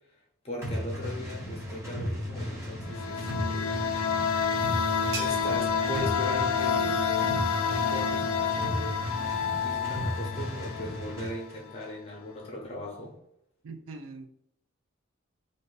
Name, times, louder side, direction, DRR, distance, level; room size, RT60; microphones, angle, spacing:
voice 1, 0.4-3.8 4.9-7.3 7.7-9.0 9.6-13.1, left 1 dB, 30° left, -1 dB, 0.6 m, -39 dB
sound 1, 0.6-11.4, equal, 15° right, 0.7 m, -35 dB
sound 2, 2.8-11.4, left 6 dB, 85° left, 0.3 m, -29 dB
sound 3, 3.8-9.2, right 4 dB, 55° right, 0.7 m, -46 dB
voice 2, 13.6-14.3, right 3 dB, 80° right, 7 dB, 0.4 m, -42 dB
2.5 x 2.5 x 3.8 m, 0.75 s
head